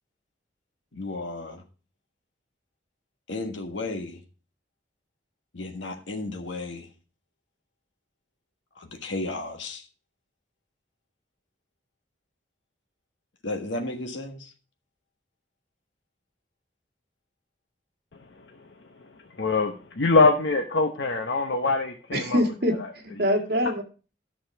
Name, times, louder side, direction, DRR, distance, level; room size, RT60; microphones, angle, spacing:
voice 1, 0.9-1.6 3.3-4.2 5.5-6.9 8.7-9.9 13.4-14.5, left 2 dB, 90° left, 5 dB, 1.5 m, -34 dB
voice 2, 18.1-22.4 22.8-22.9, left 3 dB, 70° left, 4 dB, 0.9 m, -24 dB
voice 3, 22.1-23.8, equal, 55° right, 1 dB, 1.8 m, -25 dB
10.5 x 6.5 x 4.7 m, 0.35 s
head